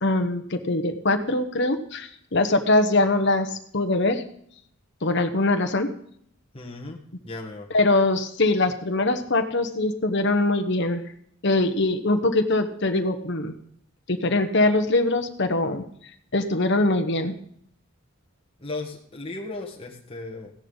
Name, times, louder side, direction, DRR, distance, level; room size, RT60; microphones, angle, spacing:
voice 1, 0.0-4.2 5.0-5.9 7.7-11.0 11.4-13.5 14.1-15.8 16.3-17.3, left 2 dB, 55° left, 6 dB, 1.1 m, -22 dB
voice 2, 6.5-7.0 7.2-7.7 18.6-20.5, left 2 dB, 25° left, -1 dB, 1.5 m, -36 dB
16.0 x 11.0 x 3.9 m, 0.66 s
head